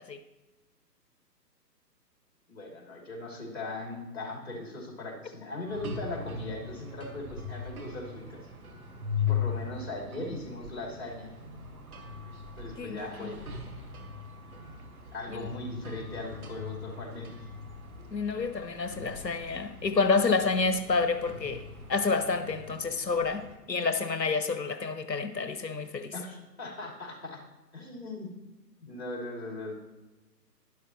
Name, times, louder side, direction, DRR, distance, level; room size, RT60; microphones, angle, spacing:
voice 1, 2.5-8.5 9.3-11.3 12.6-13.6 15.1-17.5 26.1-27.4 27.7-28.3 28.8-29.7, left 2 dB, 40° left, 0 dB, 3.0 m, -39 dB
sound 1, 5.7-23.6, left 6 dB, 55° right, 1.8 m, -39 dB
voice 2, 12.8-13.3 15.3-15.4 18.1-21.6 21.9-26.1, left 4 dB, 80° left, 10 dB, 0.9 m, -29 dB
11.5 x 11.5 x 3.0 m, 1.1 s
figure-of-eight pair, 135°, 50 cm